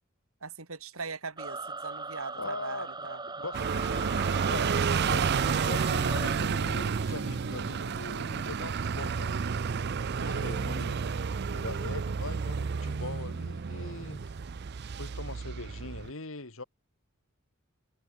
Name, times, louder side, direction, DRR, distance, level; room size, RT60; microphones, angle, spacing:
voice 1, 0.4-3.2 10.2-10.6 11.0-11.4, right 4 dB, 75° right, 2.9 m, -41 dB
sound 1, 1.4-6.4, right 3 dB, 20° right, 2.4 m, -39 dB
voice 2, 2.4-4.2 4.5-9.4 10.1-11.0 11.5-14.2 15.0-16.6, left 3 dB, 65° left, 2.3 m, -41 dB
sound 2, 3.5-16.1, right 5 dB, 50° right, 0.5 m, -31 dB
head